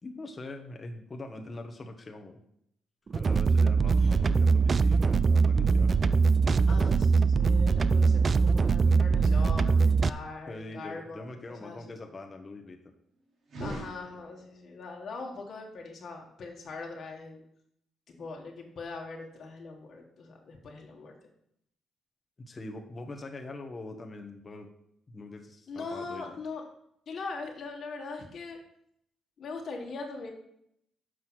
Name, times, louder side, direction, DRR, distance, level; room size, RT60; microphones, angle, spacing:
voice 1, 0.0-2.4 3.1-6.9 10.5-12.8 22.4-24.7 25.1-26.4, left 2 dB, 30° left, 3 dB, 1.1 m, -43 dB
sound 1, 3.1-10.1, right 4 dB, 40° right, 0.3 m, -22 dB
voice 2, 6.7-12.0 13.6-17.4 18.1-21.2 25.7-26.6 27.1-28.6 29.4-30.3, left 3 dB, 60° left, 0 dB, 1.6 m, -41 dB
sound 2, 13.4-14.7, right 1 dB, 65° right, 2.4 m, -40 dB
6.4 x 5.5 x 6.1 m, 0.74 s
cardioid pair, 80°, 0 cm